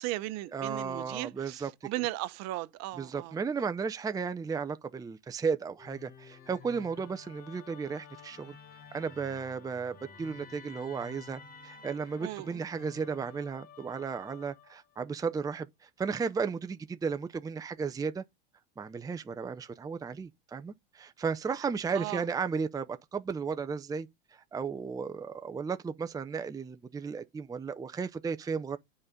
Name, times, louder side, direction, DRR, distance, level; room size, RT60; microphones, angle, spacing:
voice 1, 0.0-3.4 12.2-12.6 21.9-22.2, right 17 dB, 55° right, 1.0 m, -36 dB
voice 2, 0.5-1.9 3.0-8.6 8.9-18.2 18.8-28.8, right 5 dB, 10° right, 0.6 m, -34 dB
Musical instrument, 5.8-15.0, left 6 dB, 30° left, 1.8 m, -52 dB
8.7 x 4.1 x 5.2 m
supercardioid pair, 100°, 31 cm